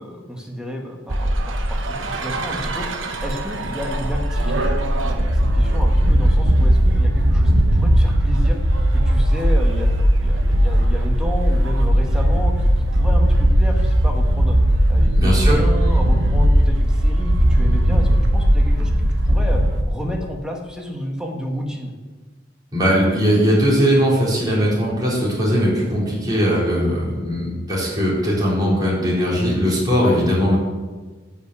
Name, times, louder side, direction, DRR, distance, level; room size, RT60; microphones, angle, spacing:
voice 1, 0.0-2.9 3.2-4.7 5.1-8.6 8.9-9.9 10.2-14.6 14.9-21.9, equal, 5° right, 0 dB, 1.6 m, -31 dB
sound 1, 1.1-19.8, equal, 85° right, 1.2 m, -17 dB
voice 2, 15.1-15.6 22.7-30.6, equal, 20° right, -7 dB, 4.3 m, -19 dB
10.5 x 5.8 x 8.2 m, 1.3 s
head